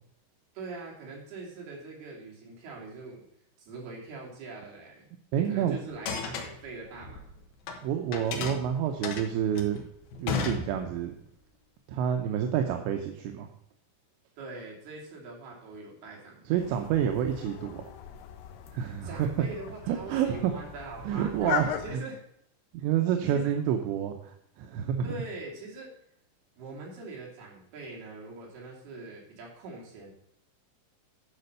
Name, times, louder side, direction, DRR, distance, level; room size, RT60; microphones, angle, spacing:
voice 1, 0.5-3.2 3.6-7.3 14.4-16.6 19.0-21.5 21.8-22.2 23.3-23.5 25.0-25.9 26.6-30.1, right 3 dB, 60° right, -3 dB, 4.5 m, -42 dB
voice 2, 5.3-5.8 7.8-9.9 10.2-11.1 11.9-13.5 16.5-17.8 18.7-19.5 19.9-20.5 21.0-22.0 22.8-25.2, right 9 dB, 80° right, 4 dB, 2.9 m, -28 dB
sound 1, 5.9-7.8 8.1-11.2, left 5 dB, 70° left, 2.7 m, -34 dB
sound 2, 16.6-22.0, left 10 dB, 85° left, 3.1 m, -38 dB
11.0 x 5.1 x 6.6 m, 0.72 s
omnidirectional pair, 5.3 m